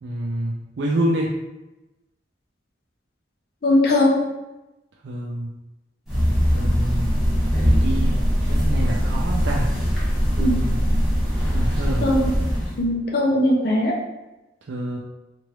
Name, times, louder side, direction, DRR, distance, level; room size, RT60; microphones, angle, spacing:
voice 1, 0.0-1.4 5.0-5.5 6.5-7.1 7.6-9.7 10.4-10.8 11.5-12.1 14.7-15.0, right 1 dB, 75° right, -2 dB, 0.4 m, -27 dB
voice 2, 3.6-4.2 10.4-10.6 12.0-12.3 12.8-14.0, left 1 dB, 55° left, -2 dB, 0.5 m, -19 dB
sound 1, 6.1-12.8, equal, ahead, 1.0 m, -21 dB
3.1 x 2.5 x 2.9 m, 0.99 s
head